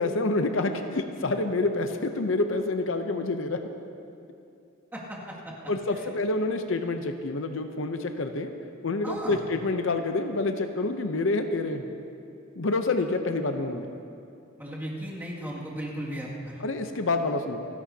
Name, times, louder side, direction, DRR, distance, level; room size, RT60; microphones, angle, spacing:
voice 1, 0.0-3.6 5.7-8.5 8.8-11.9 12.5-13.9 16.6-17.7, left 2 dB, 70° left, 7 dB, 0.7 m, -27 dB
voice 2, 4.9-5.5 5.9-6.1 9.0-9.4 14.6-16.6, right 1 dB, 10° right, -6 dB, 2.2 m, -36 dB
28.0 x 11.0 x 2.8 m, 2.6 s
head